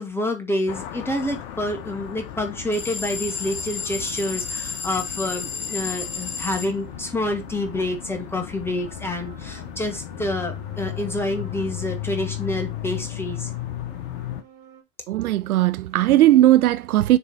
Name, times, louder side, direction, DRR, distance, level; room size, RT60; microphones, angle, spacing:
voice 1, 0.0-13.5, left 1 dB, 5° left, 1.4 m, -28 dB
sound 1, 0.7-14.4, left 11 dB, 45° left, 1.0 m, -35 dB
sound 2, 2.7-6.7, left 5 dB, 60° left, 1.7 m, -32 dB
sound 3, 5.7-14.8, right 9 dB, 45° right, 2.0 m, -50 dB
voice 2, 15.1-17.2, right 14 dB, 70° right, 0.5 m, -17 dB
6.9 x 3.4 x 4.4 m
figure-of-eight pair, 90°, 46 cm